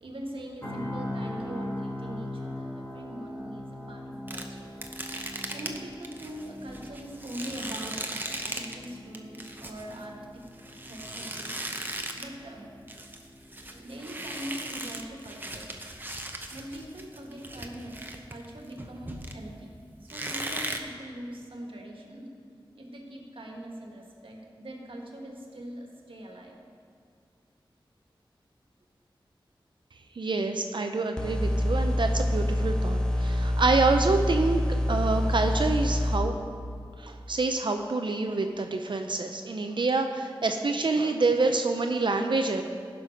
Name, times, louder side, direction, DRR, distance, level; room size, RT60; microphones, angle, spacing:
voice 1, 0.0-4.7 5.5-10.4 10.8-11.6 12.1-12.7 13.6-15.8 16.5-19.7 20.0-22.3 22.7-26.6, right 1 dB, 75° right, 0 dB, 1.6 m, -42 dB
sound 1, 0.6-14.6 15.0-15.2, left 1 dB, 35° left, 3.2 m, -41 dB
sound 2, 4.3-8.9 9.1-12.4 12.7-19.6 20.1-20.8, right 1 dB, 20° right, 0.9 m, -38 dB
voice 2, 30.2-34.6 34.9-36.4 37.0-42.6, right 3 dB, 60° right, 5 dB, 0.6 m, -27 dB
sound 3, 31.2-36.2, left 1 dB, 10° left, 0.8 m, -26 dB
15.5 x 6.1 x 5.2 m, 2.2 s
wide cardioid pair, 85°, 9 cm